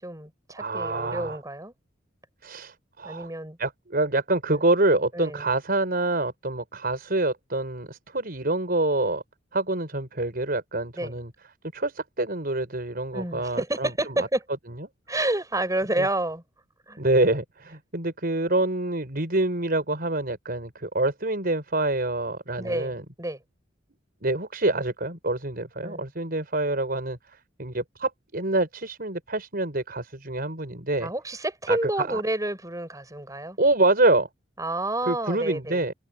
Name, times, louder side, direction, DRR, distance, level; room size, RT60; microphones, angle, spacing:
voice 1, 0.0-1.7 3.0-3.6 4.5-4.6 5.1-5.4 11.0-11.1 13.1-14.4 15.1-16.4 16.9-17.0 22.6-23.4 25.8-26.1 31.0-33.6 34.6-35.8, right 1 dB, 15° right, 7.4 m, -29 dB
voice 2, 0.6-1.4 2.4-3.3 3.6-9.2 9.5-11.3 11.7-13.9 14.2-14.3 14.8-14.9 16.0-16.1 17.0-23.0 24.2-27.2 27.6-31.1 31.7-32.2 33.6-34.3 35.1-35.9, right 2 dB, 50° right, 5.5 m, -26 dB
head